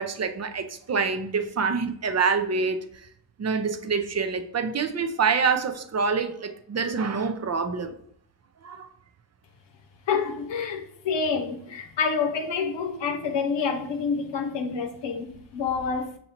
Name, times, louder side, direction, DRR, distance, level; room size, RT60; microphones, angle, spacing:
voice 1, 0.0-2.8 3.4-7.9 8.6-8.9, right 5 dB, 40° right, 0.5 m, -26 dB
voice 2, 10.1-16.2, left 5 dB, 80° left, 0.8 m, -28 dB
5.4 x 2.8 x 2.9 m
cardioid pair, 60°, 43 cm